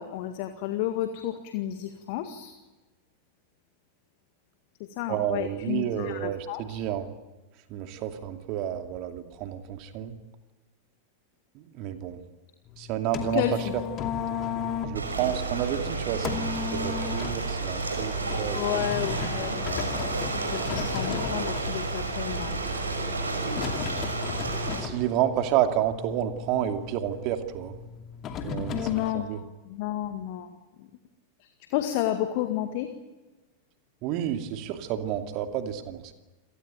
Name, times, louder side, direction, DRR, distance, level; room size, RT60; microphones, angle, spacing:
voice 1, 0.0-2.5 4.9-6.8 13.3-13.7 18.5-20.2 20.5-22.6 28.8-30.5 30.8-30.9 31.4-32.9, left 12 dB, 50° left, 8 dB, 1.9 m, -31 dB
voice 2, 5.1-7.1 7.7-10.1 11.5-12.2 12.8-13.4 14.8-18.9 24.8-27.8 28.4-28.9 29.1-29.4 34.0-36.1, right 11 dB, 40° right, 6 dB, 2.6 m, -30 dB
sound 1, 12.7-29.1, left 7 dB, 30° left, 2.6 m, -36 dB
Ocean, 14.9-24.8, right 3 dB, 75° right, 5.6 m, -31 dB
28.5 x 18.5 x 9.3 m, 1.2 s
figure-of-eight pair, 90°, 0 cm